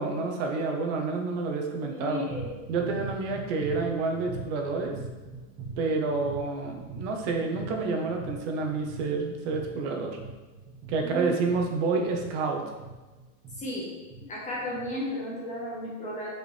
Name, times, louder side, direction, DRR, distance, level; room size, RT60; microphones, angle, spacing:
voice 1, 0.0-2.3 2.7-4.9 5.8-10.2 10.9-12.6, right 4 dB, 55° right, 2 dB, 1.3 m, -29 dB
voice 2, 1.8-2.6 11.0-11.3 13.5-13.9 14.3-16.3, left 1 dB, 20° left, -6 dB, 1.3 m, -34 dB
sound 1, 2.2-14.9, right 4 dB, 25° right, 1.8 m, -42 dB
6.7 x 5.1 x 3.4 m, 1.2 s
supercardioid pair, 145°, 41 cm